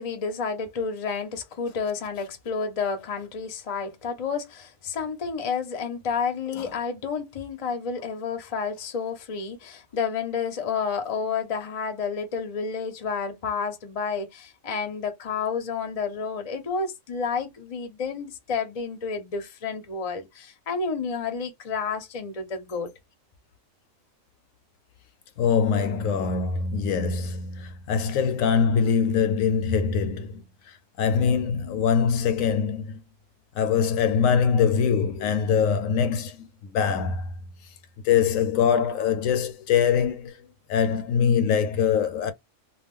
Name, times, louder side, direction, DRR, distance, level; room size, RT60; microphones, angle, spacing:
voice 1, 0.0-22.9, left 5 dB, 35° left, 0.6 m, -30 dB
voice 2, 25.4-30.4 31.0-33.0 33.5-37.3 38.0-42.3, left 7 dB, 75° left, 1.0 m, -23 dB
2.3 x 2.2 x 3.6 m
omnidirectional pair, 1.4 m